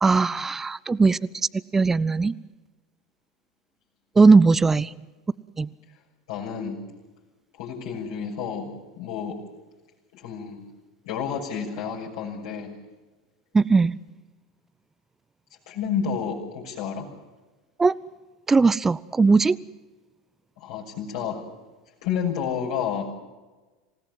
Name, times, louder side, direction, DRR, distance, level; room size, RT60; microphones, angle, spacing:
voice 1, 0.0-1.3 1.7-2.3 4.2-4.9 5.6-5.7 13.5-14.0 17.8-17.9 18.5-19.6, right 4 dB, 15° right, 18 dB, 0.6 m, -18 dB
voice 2, 6.3-6.8 7.6-8.7 9.0-9.4 10.1-10.6 11.0-12.7 15.7-17.0 20.6-21.4 22.0-23.1, left 7 dB, 65° left, -7 dB, 6.4 m, -30 dB
27.0 x 17.5 x 7.6 m, 1.2 s
figure-of-eight pair, 80°, 2 cm